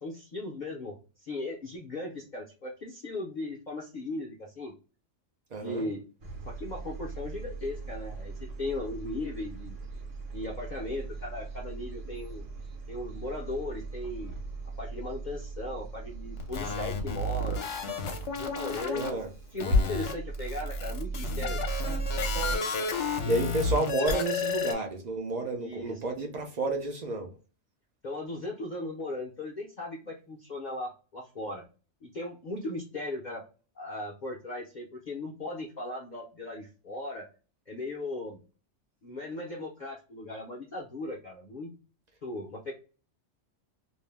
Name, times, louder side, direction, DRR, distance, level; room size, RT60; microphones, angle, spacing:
voice 1, 0.0-4.7 5.6-6.0 6.4-9.8 10.3-12.5 12.9-14.4 14.8-17.6 18.3-19.0 19.5-21.6 25.6-26.0 28.0-31.6 32.0-33.4 33.8-37.3 37.7-38.4 39.0-41.7 42.2-42.7, left 2 dB, 50° left, 0.5 m, -37 dB
voice 2, 5.5-5.9 18.9-19.3 23.3-27.4, right 2 dB, 60° right, 0.4 m, -30 dB
sound 1, 6.2-22.6, right 1 dB, 75° right, 1.2 m, -36 dB
sound 2, 16.4-19.1 19.6-24.7, left 4 dB, 70° left, 0.9 m, -32 dB
2.6 x 2.0 x 3.1 m
omnidirectional pair, 1.3 m